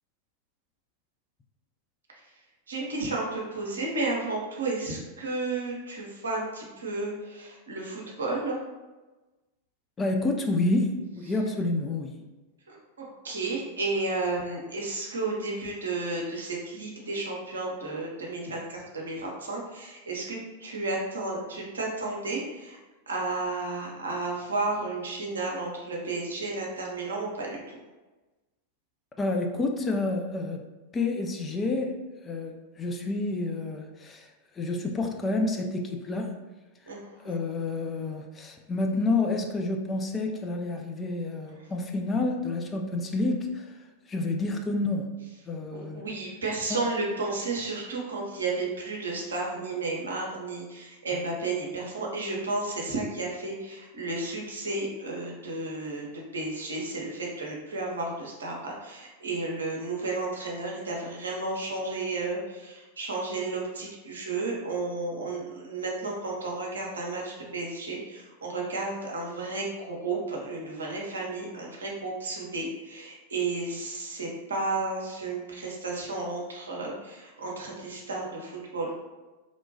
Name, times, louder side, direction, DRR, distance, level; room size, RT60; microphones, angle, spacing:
voice 1, 2.7-8.6 12.7-22.8 23.1-27.6 36.9-37.4 45.7-79.0, right 3 dB, 70° right, -2 dB, 0.6 m, -32 dB
voice 2, 10.0-12.2 29.2-30.6 30.9-36.3 36.8-45.2 45.5-46.0 46.7-46.9 51.1-51.2, left 2 dB, 20° left, 3 dB, 0.3 m, -29 dB
2.9 x 2.2 x 2.7 m, 1.2 s
figure-of-eight pair, 90°, 0 cm